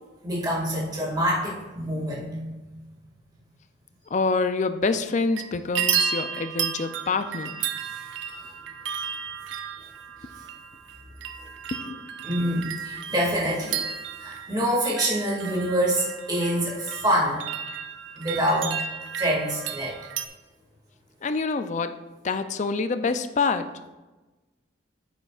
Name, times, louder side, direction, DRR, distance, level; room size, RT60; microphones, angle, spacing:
voice 1, 0.2-2.8 7.9-8.1 12.2-13.8 14.2-17.5 18.2-18.8 19.2-20.0, equal, 20° right, -4 dB, 2.0 m, -26 dB
voice 2, 4.1-7.6 11.7-12.0 21.2-22.0 22.2-23.7, left 4 dB, 40° left, 10 dB, 0.4 m, -26 dB
sound 1, 5.1-5.5 5.8-20.3, right 8 dB, 75° right, 0.6 m, -33 dB
9.6 x 8.0 x 2.4 m, 1.2 s
head